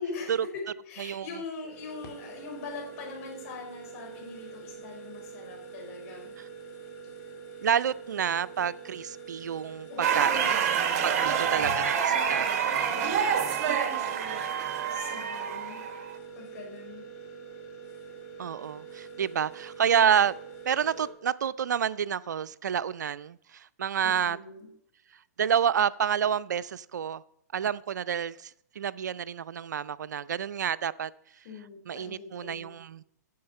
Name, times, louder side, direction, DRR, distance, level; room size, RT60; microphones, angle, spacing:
voice 1, 0.0-6.3 9.9-10.6 11.0-11.7 12.1-13.2 13.6-14.5 14.9-15.8 16.3-17.1 24.0-24.7 31.4-32.7, left 4 dB, 50° left, 4.4 m, -42 dB
sound 1, 1.6-21.1, right 6 dB, 30° left, 2.4 m, -45 dB
voice 2, 7.6-10.3 11.0-12.5 18.4-20.3 20.7-24.4 25.4-27.2 27.5-31.1 31.9-33.0, right 8 dB, 80° right, 0.4 m, -29 dB
sound 2, 10.0-16.2, right 7 dB, 50° right, 1.4 m, -27 dB
9.4 x 7.4 x 5.4 m
hypercardioid pair, 130°, 9 cm